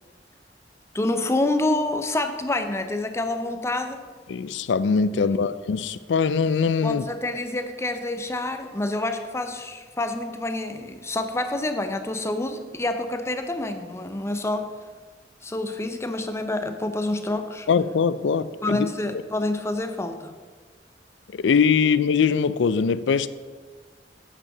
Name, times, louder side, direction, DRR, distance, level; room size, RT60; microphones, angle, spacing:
voice 1, 0.9-4.0 5.2-5.4 6.8-14.7 15.4-17.7 18.6-20.3, left 2 dB, 15° left, 0.6 m, -27 dB
voice 2, 4.3-7.0 17.7-18.9 21.4-23.3, left 5 dB, 90° left, 0.4 m, -22 dB
8.2 x 6.0 x 5.8 m
head